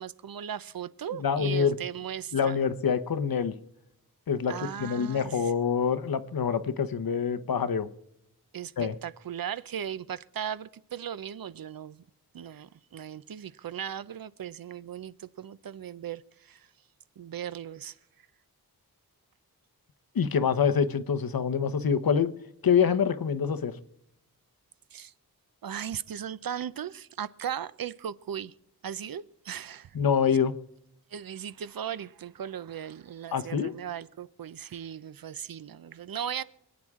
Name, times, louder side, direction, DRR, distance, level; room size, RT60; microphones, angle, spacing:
voice 1, 0.0-2.6 4.5-5.5 8.5-12.0 12.3-16.7 17.2-18.0 24.9-25.1 25.6-28.5 28.8-30.0 31.1-36.4, right 9 dB, 65° right, 0.6 m, -37 dB
voice 2, 1.2-1.7 2.3-3.5 4.3-4.5 4.8-7.9 8.8-8.9 20.1-22.3 22.6-23.8 29.9-30.5 33.3-33.7, left 7 dB, 65° left, 1.0 m, -26 dB
27.0 x 9.6 x 3.7 m
wide cardioid pair, 115°, 38 cm